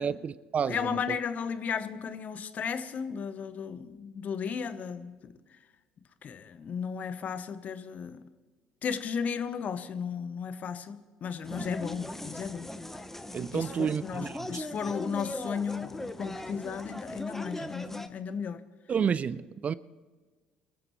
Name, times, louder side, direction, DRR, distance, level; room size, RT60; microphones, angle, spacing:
voice 1, 0.0-1.2 11.5-11.7 13.3-14.6 17.6-17.7 18.9-19.7, right 7 dB, 40° right, 0.5 m, -31 dB
voice 2, 0.7-5.3 6.2-8.2 8.8-12.7 13.5-13.6 14.0-18.6, left 6 dB, 45° left, 1.1 m, -34 dB
sound 1, 11.4-18.1, left 1 dB, 10° left, 1.1 m, -40 dB
25.5 x 14.0 x 3.2 m
hypercardioid pair, 60°, 4 cm